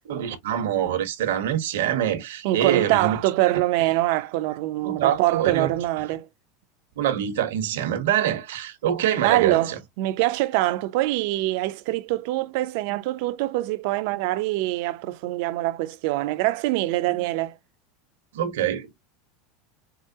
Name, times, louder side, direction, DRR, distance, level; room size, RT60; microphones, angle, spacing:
voice 1, 0.1-3.2 4.8-5.7 7.0-9.7 18.3-18.9, right 10 dB, 90° right, 1.1 m, -25 dB
voice 2, 2.4-6.2 9.2-17.6, right 17 dB, 65° right, 0.6 m, -24 dB
4.8 x 2.1 x 2.7 m
supercardioid pair, 140°, 0 cm